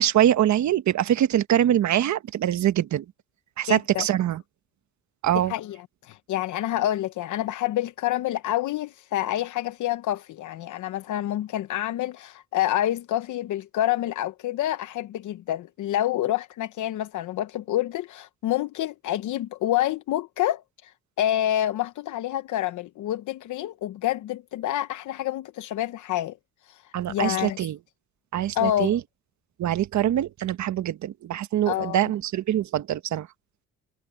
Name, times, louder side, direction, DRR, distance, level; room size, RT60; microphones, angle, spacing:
voice 1, 0.0-3.0 3.6-4.4 5.2-5.5 26.9-27.8 28.3-29.0 29.6-33.3, right 11 dB, 70° right, 1.3 m, -23 dB
voice 2, 3.7-4.1 5.5-5.8 6.0-20.9 21.2-26.4 26.7-26.8 27.1-27.6 28.5-29.0 31.7-32.0, left 13 dB, 80° left, 0.9 m, -27 dB
cardioid pair, 90°, 30 cm